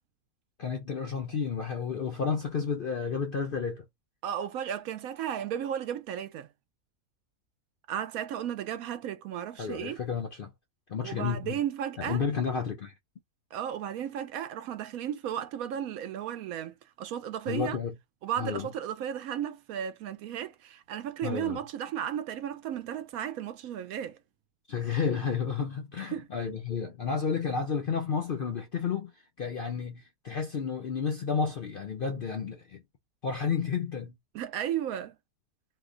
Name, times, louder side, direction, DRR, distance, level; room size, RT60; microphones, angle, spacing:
voice 1, 0.6-3.8 9.6-10.5 10.9-11.6 12.0-12.9 17.5-17.9 18.4-18.7 21.2-21.6 24.7-29.1 29.4-32.8 33.2-34.1, left 6 dB, 60° left, 0.5 m, -31 dB
voice 2, 4.2-6.5 7.9-10.0 11.0-12.2 13.5-17.8 18.2-24.2 26.1-26.3 34.3-35.2, right 10 dB, 75° right, 1.0 m, -34 dB
2.8 x 2.2 x 3.7 m
omnidirectional pair, 1.6 m